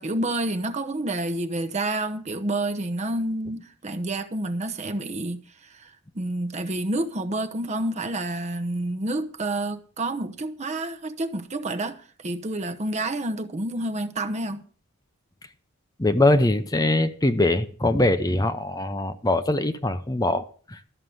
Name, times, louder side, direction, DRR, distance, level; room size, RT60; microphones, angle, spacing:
voice 1, 0.0-5.4 5.7-14.6, right 2 dB, 35° right, 0.9 m, -29 dB
voice 2, 16.0-20.9, left 2 dB, 20° left, 0.7 m, -22 dB
13.0 x 6.7 x 7.6 m
head